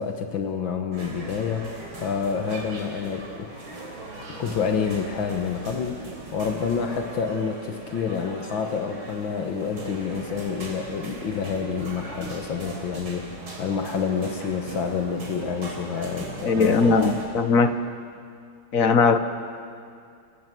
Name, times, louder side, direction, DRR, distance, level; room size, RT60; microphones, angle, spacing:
voice 1, 0.0-3.5 4.3-17.0, left 6 dB, 70° left, 5 dB, 1.9 m, -28 dB
sound 1, 0.9-17.3, right 2 dB, 85° right, 4.4 m, -39 dB
voice 2, 16.5-17.8 18.7-19.2, left 4 dB, 50° left, 9 dB, 1.3 m, -19 dB
29.0 x 17.5 x 7.6 m, 2.3 s
omnidirectional pair, 2.2 m